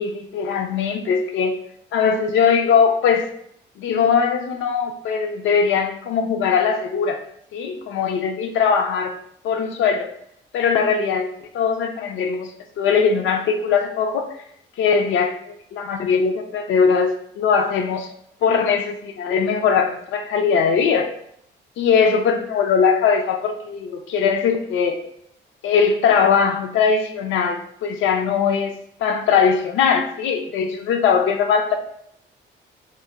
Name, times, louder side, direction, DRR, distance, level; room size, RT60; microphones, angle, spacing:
voice 1, 0.0-1.6 1.9-3.3 3.8-7.2 7.5-9.1 9.4-10.1 10.5-11.3 11.5-14.3 14.8-15.3 15.7-18.1 18.4-21.1 21.8-25.0 25.6-28.7 29.0-31.8, left 6 dB, 75° left, 6 dB, 0.4 m, -20 dB
2.9 x 2.1 x 2.3 m, 0.70 s
cardioid pair, 90°, 20 cm